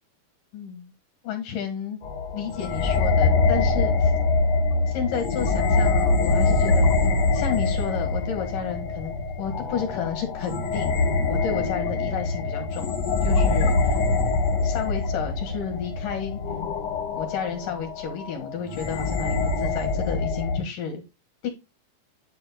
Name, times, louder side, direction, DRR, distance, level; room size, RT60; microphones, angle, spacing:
voice 1, 0.5-0.9 1.2-2.0 2.3-4.1 4.9-11.0 11.3-12.9 13.2-14.0 14.6-16.4 17.2-21.0 21.4-21.5, left 7 dB, 75° left, 6 dB, 3.3 m, -31 dB
sound 1, 2.0-20.6, left 3 dB, 60° left, 2.3 m, -24 dB
9.5 x 7.8 x 2.2 m, 0.24 s
omnidirectional pair, 3.8 m